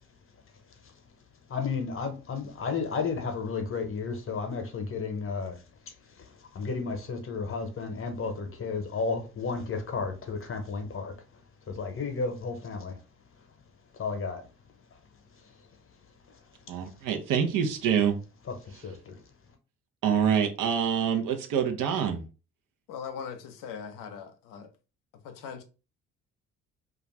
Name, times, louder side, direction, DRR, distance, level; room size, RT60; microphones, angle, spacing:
voice 1, 1.5-13.0 13.9-14.4 14.9-15.0 15.3-15.6 16.3-16.4 18.5-19.2, left 4 dB, 40° left, 0.8 m, -33 dB
voice 2, 16.7-18.2 20.0-22.2, right 8 dB, 65° right, 0.7 m, -26 dB
voice 3, 22.9-24.7 25.2-25.6, left 7 dB, 65° left, 0.6 m, -40 dB
2.4 x 2.3 x 3.1 m
hypercardioid pair, 50°, 35 cm